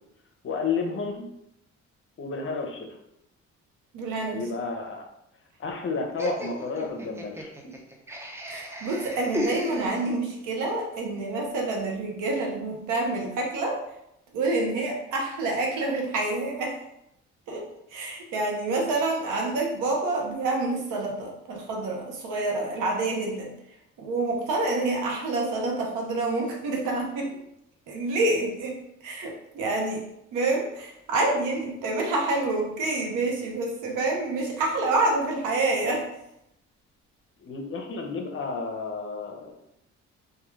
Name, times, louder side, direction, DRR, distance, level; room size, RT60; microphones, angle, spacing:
voice 1, 0.4-1.3 2.2-2.9 4.3-5.1 5.6-7.7 37.4-39.6, left 4 dB, 45° left, 2 dB, 0.6 m, -31 dB
voice 2, 3.9-4.6 8.5-13.8 14.3-16.8 17.5-23.5 24.0-27.3 27.9-30.0 30.3-36.1, right 2 dB, 85° right, 0 dB, 0.7 m, -27 dB
Laughter, 6.2-10.4, right 1 dB, 10° right, 0.3 m, -34 dB
2.2 x 2.2 x 3.0 m, 0.81 s
cardioid pair, 90°, 30 cm